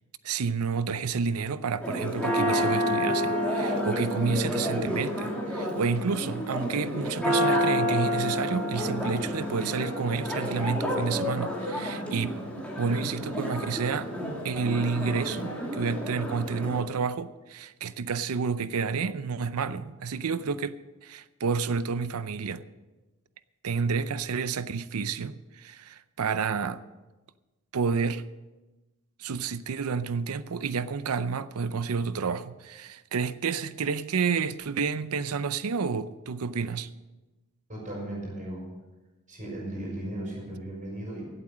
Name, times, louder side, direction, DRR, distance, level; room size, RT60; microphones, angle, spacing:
voice 1, 0.2-12.4 12.8-14.1 14.4-22.6 23.6-26.8 27.7-28.2 29.2-36.9, right 5 dB, 85° right, 0.6 m, -30 dB
Church bell, 1.8-16.8, equal, 5° left, 2.7 m, -29 dB
voice 2, 37.7-38.6 39.3-41.3, right 1 dB, 35° right, 5.8 m, -36 dB
16.0 x 8.3 x 6.2 m
head